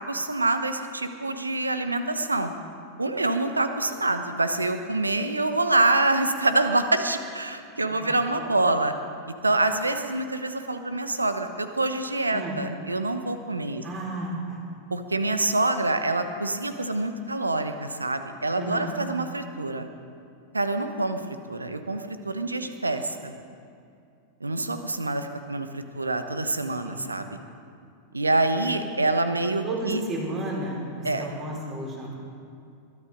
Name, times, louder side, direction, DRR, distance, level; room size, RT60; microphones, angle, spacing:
voice 1, 0.1-2.5 3.0-8.9 9.4-13.8 14.9-19.9 20.5-23.3 24.4-27.2 28.1-30.0 31.0-31.3, right 2 dB, 80° right, 9 dB, 1.0 m, -26 dB
voice 2, 12.3-12.6 13.8-14.6 18.6-19.0 26.8-27.1 29.6-32.2, right 1 dB, 30° right, -3 dB, 5.0 m, -33 dB
22.0 x 12.0 x 5.2 m, 2.4 s
figure-of-eight pair, 90°, 0 cm